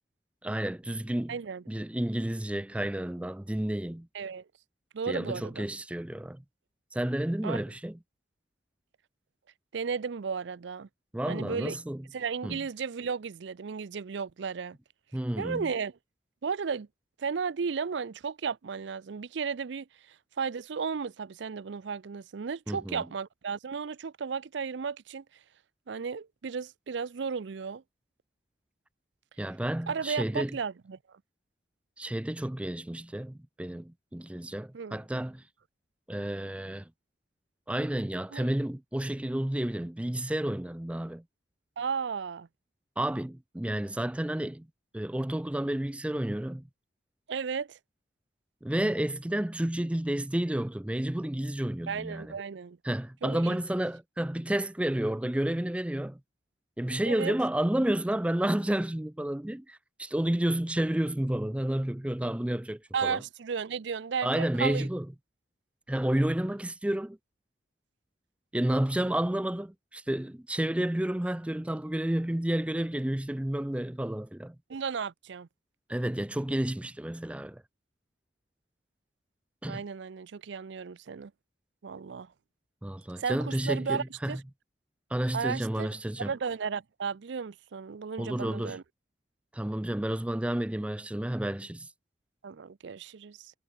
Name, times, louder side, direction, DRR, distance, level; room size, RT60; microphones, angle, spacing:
voice 1, 0.4-1.4 1.7-4.1 5.1-6.4 6.9-8.0 11.1-12.1 12.4-12.6 15.1-15.7 22.7-23.1 29.4-30.6 32.0-35.4 36.1-36.9 37.7-41.2 43.0-44.7 44.9-46.6 48.6-52.4 52.8-56.2 56.8-63.2 64.2-65.1 65.9-67.2 68.5-74.6 75.9-77.6 79.6-79.8 82.8-84.4 85.1-86.3 88.2-88.8 89.5-91.9, right 1 dB, 5° right, 0.3 m, -31 dB
voice 2, 1.3-1.6 4.1-4.4 4.9-5.6 7.4-7.6 9.7-10.9 11.3-11.7 12.1-14.8 15.4-15.9 16.4-16.9 17.2-19.9 20.4-25.2 25.9-27.8 29.9-31.0 34.7-35.0 38.3-38.5 41.8-42.5 47.3-47.8 51.9-52.8 53.2-53.6 57.1-57.3 62.9-64.9 74.7-75.5 79.7-81.3 81.8-82.3 83.2-84.4 85.3-85.9 86.2-88.8 92.4-93.5, right 6 dB, 75° right, 0.5 m, -34 dB
head